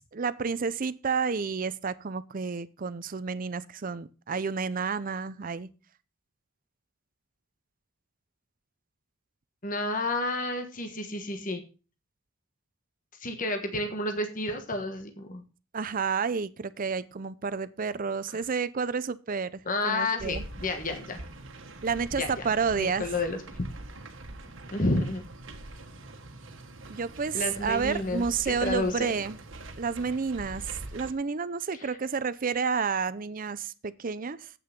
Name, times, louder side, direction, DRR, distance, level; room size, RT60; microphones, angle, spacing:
voice 1, 0.1-5.7 15.7-20.4 21.8-23.1 26.9-29.4 29.8-34.5, right 5 dB, 40° right, 0.5 m, -30 dB
voice 2, 9.6-11.6 13.2-15.4 18.3-18.4 19.6-21.2 22.1-22.3 22.8-23.7 24.7-25.2 27.3-29.1 31.7-31.9, left 2 dB, 40° left, 1.3 m, -30 dB
sound 1, 20.2-31.1, right 2 dB, 65° right, 1.4 m, -43 dB
8.6 x 6.6 x 5.9 m
head